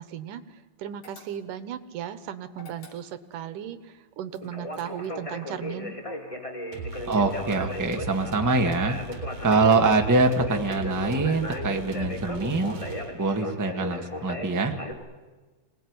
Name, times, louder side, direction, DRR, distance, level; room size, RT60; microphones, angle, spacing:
voice 1, 0.0-6.0, right 9 dB, 85° right, 12 dB, 2.8 m, -36 dB
sound 1, 1.0-1.7 2.5-3.4 4.3-5.3, left 4 dB, 75° left, 5.3 m, -51 dB
Conversation, 4.4-14.9, left 1 dB, 10° left, 2.2 m, -36 dB
sound 2, 6.7-13.5, right 3 dB, 55° right, 4.4 m, -38 dB
voice 2, 7.1-9.0 9.4-12.7 13.1-14.8, right 3 dB, 15° right, 4 dB, 0.7 m, -24 dB
25.5 x 19.0 x 9.7 m, 1.3 s
omnidirectional pair, 3.6 m